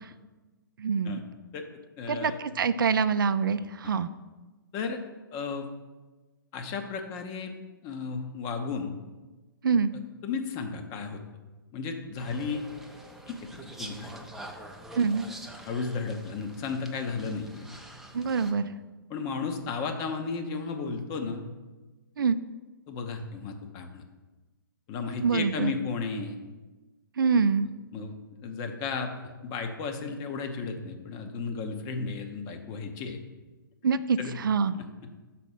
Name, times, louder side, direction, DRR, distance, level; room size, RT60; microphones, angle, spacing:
voice 1, 0.8-1.2 2.1-4.1 9.6-9.9 15.0-15.3 18.1-18.6 22.2-22.4 25.2-25.7 27.2-27.7 33.8-34.8, right 5 dB, 65° right, 13 dB, 0.4 m, -25 dB
voice 2, 2.0-2.4 3.8-3.9 4.7-5.0 5.3-5.7 6.5-7.5 7.8-8.9 9.9-11.2 11.7-12.6 13.3-13.4 13.6-14.2 15.7-17.7 19.1-21.5 22.9-24.0 24.9-26.4 27.9-28.1 28.4-33.2 34.2-34.4 34.7-34.8, left 5 dB, 30° left, 5 dB, 0.8 m, -34 dB
sound 1, 12.2-18.5, right 1 dB, ahead, 0.6 m, -45 dB
6.0 x 4.2 x 5.7 m, 1.2 s
figure-of-eight pair, 125°, 12 cm